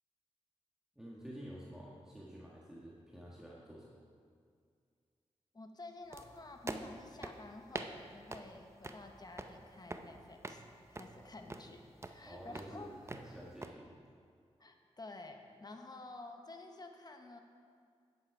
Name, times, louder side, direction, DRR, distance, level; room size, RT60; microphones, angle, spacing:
voice 1, 0.9-3.9 11.1-11.3 12.2-14.0, equal, 5° right, -5 dB, 1.6 m, -50 dB
voice 2, 5.5-11.8 12.1-12.9 14.6-17.4, left 2 dB, 35° left, 4 dB, 1.1 m, -51 dB
sound 1, 6.1-13.7, right 2 dB, 25° right, 0.7 m, -47 dB
10.5 x 7.4 x 4.7 m, 2.2 s
cardioid pair, 50°, 11 cm